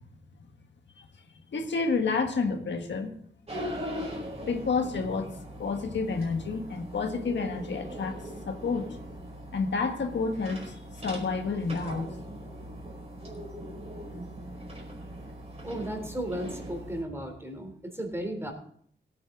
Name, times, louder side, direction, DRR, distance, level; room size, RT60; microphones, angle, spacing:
voice 1, 1.5-3.1 4.4-5.3 5.6-8.2 8.5-8.9 9.5-12.1, left 4 dB, 75° left, 5 dB, 1.6 m, -29 dB
sound 1, 3.5-17.0, equal, 35° right, 4.7 m, -40 dB
voice 2, 15.6-18.5, right 1 dB, 15° right, 4 dB, 3.5 m, -35 dB
17.0 x 9.3 x 3.9 m, 0.62 s
cardioid pair, 75°, 19 cm